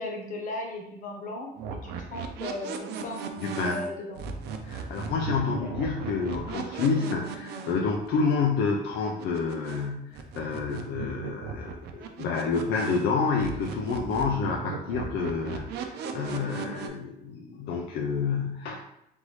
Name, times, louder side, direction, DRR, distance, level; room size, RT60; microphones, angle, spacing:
voice 1, 0.0-3.3 3.6-4.2 5.6-5.7, left 2 dB, 50° left, 1 dB, 1.2 m, -37 dB
sound 1, 1.6-9.9 10.1-13.1 13.4-16.9, right 5 dB, 80° right, 0.6 m, -37 dB
voice 2, 3.4-3.8 4.6-18.8, left 5 dB, 75° left, 0 dB, 0.6 m, -29 dB
3.9 x 3.5 x 3.2 m, 0.82 s
cardioid pair, 110°, 17 cm